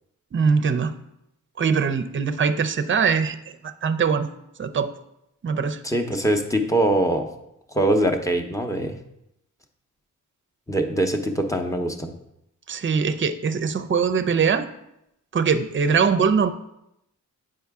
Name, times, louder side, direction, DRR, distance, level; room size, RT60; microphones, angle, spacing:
voice 1, 0.3-0.9 1.6-4.3 4.6-4.9 5.4-5.8 12.7-14.7 15.3-16.5, right 6 dB, 40° right, 10 dB, 0.5 m, -22 dB
voice 2, 5.8-7.3 7.7-8.9 10.7-12.1, right 1 dB, 10° left, 4 dB, 0.8 m, -22 dB
8.4 x 4.8 x 3.5 m, 0.83 s
wide cardioid pair, 100°, 32 cm